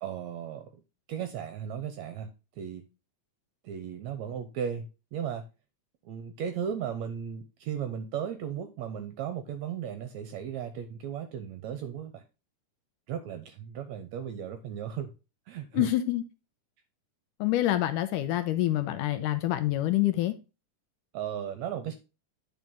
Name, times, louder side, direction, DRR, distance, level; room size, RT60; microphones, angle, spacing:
voice 1, 0.0-0.8 1.1-2.3 2.6-2.8 3.6-4.9 5.1-5.4 6.1-12.2 13.1-15.1 15.5-15.9 21.1-22.0, right 8 dB, 70° right, 1.8 m, -36 dB
voice 2, 15.7-16.2 17.4-20.4, left 14 dB, 80° left, 2.0 m, -26 dB
9.9 x 4.7 x 4.0 m
omnidirectional pair, 4.0 m